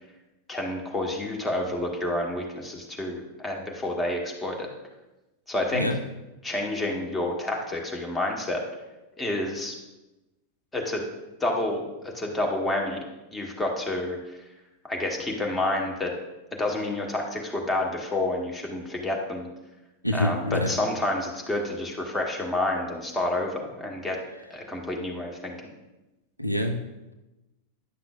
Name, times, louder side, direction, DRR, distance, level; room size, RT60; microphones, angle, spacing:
voice 1, 0.5-4.7 5.5-5.9 6.4-8.6 9.2-9.8 10.7-11.0 11.4-13.0 13.3-14.2 14.8-16.1 16.6-19.5 20.1-24.2 24.5-25.7, left 1 dB, 10° left, 0 dB, 1.2 m, -29 dB
voice 2, 20.0-20.7 26.4-26.8, left 1 dB, 90° left, 5 dB, 0.5 m, -26 dB
9.9 x 5.8 x 2.3 m, 1.0 s
figure-of-eight pair, 90°, 0 cm